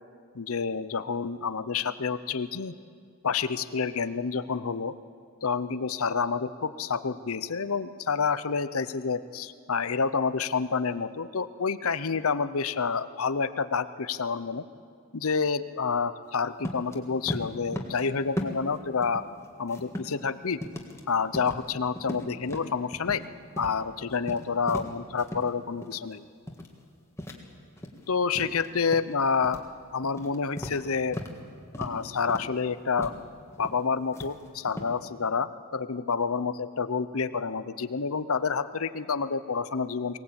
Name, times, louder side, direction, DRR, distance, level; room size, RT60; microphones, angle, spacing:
voice 1, 0.3-2.7 3.2-4.9 5.4-14.6 15.1-19.2 19.6-20.6 21.1-23.2 23.6-26.2 28.1-29.6 29.9-31.2 31.8-33.1 33.6-40.2, left 5 dB, 75° left, 13 dB, 0.8 m, -28 dB
sound 1, 16.6-17.0 17.3-18.0 18.4-18.8 19.0-20.3 20.6-21.0 21.3-21.7 22.0-23.3 23.6-23.8 24.1-25.5 25.8-26.1 26.5-26.8 27.2-28.1 28.4-29.1 29.4-29.7 30.0-31.4 31.7-32.0 32.3-32.6 33.0-33.2 33.5-33.8 34.1-34.9, left 1 dB, 10° left, 1.7 m, -37 dB
22.5 x 18.0 x 8.8 m, 2.2 s
head